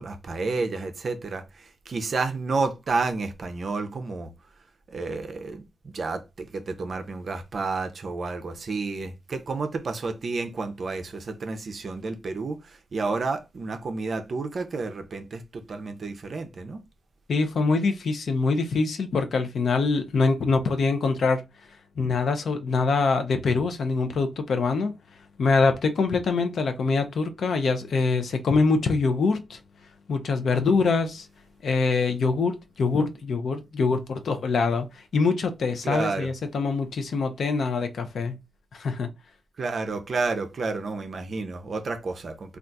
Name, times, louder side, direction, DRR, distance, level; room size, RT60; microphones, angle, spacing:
voice 1, 0.0-4.3 4.9-5.6 5.9-16.8 35.8-36.3 39.6-42.6, right 3 dB, 45° right, 0.5 m, -30 dB
voice 2, 17.3-21.4 22.0-25.0 25.4-29.6 30.1-31.3 31.6-34.9 35.1-38.4 38.7-39.1, left 4 dB, 60° left, 0.4 m, -24 dB
2.3 x 2.3 x 3.9 m
wide cardioid pair, 160°, 0 cm